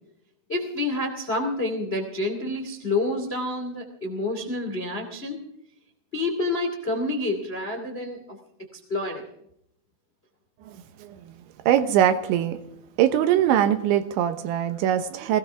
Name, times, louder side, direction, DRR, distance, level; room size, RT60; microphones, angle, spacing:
voice 1, 0.5-5.4 6.1-8.2 8.7-9.3, left 2 dB, 30° left, 4 dB, 1.0 m, -28 dB
voice 2, 10.7-11.2 11.7-12.6 13.0-15.4, right 10 dB, 75° right, 9 dB, 3.2 m, -22 dB
19.5 x 18.5 x 3.5 m, 0.74 s
omnidirectional pair, 5.6 m